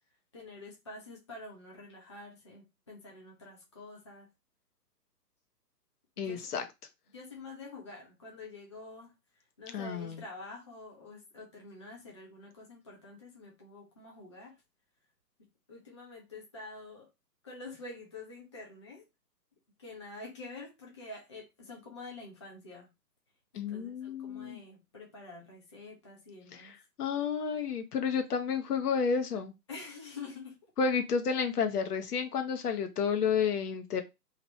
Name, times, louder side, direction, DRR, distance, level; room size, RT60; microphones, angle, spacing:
voice 1, 0.3-4.3 6.2-6.5 7.1-9.1 9.6-14.5 15.7-17.1 17.4-19.0 19.8-22.9 23.5-26.8 29.7-30.6, left 3 dB, 20° left, 0.4 m, -47 dB
voice 2, 6.2-6.6 9.7-10.2 23.5-24.6 26.5-26.7 27.0-29.5 30.8-34.0, left 6 dB, 65° left, 0.9 m, -31 dB
2.9 x 2.5 x 3.1 m
figure-of-eight pair, 125°, 50 cm